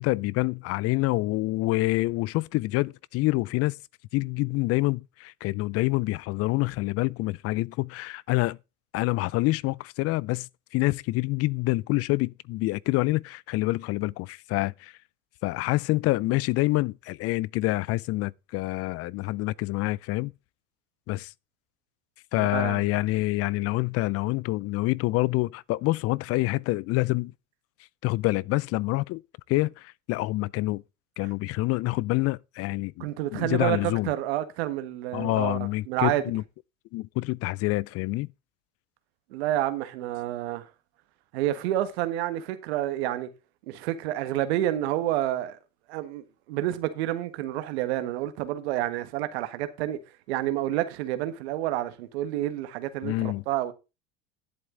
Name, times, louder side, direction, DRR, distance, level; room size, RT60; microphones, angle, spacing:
voice 1, 0.0-3.7 4.1-8.6 8.9-10.5 10.7-14.9 15.4-20.3 21.1-21.3 22.3-27.3 28.0-29.2 29.5-30.8 31.2-33.1 33.3-34.1 35.1-36.4 36.9-38.3 53.0-53.4, left 20 dB, 50° left, 0.4 m, -27 dB
voice 2, 22.4-22.8 31.2-31.3 33.0-36.2 39.3-40.7 41.3-43.3 43.7-45.6 45.9-50.0 50.3-53.7, right 13 dB, 90° right, 1.5 m, -29 dB
10.5 x 7.9 x 3.8 m
supercardioid pair, 120°, 31 cm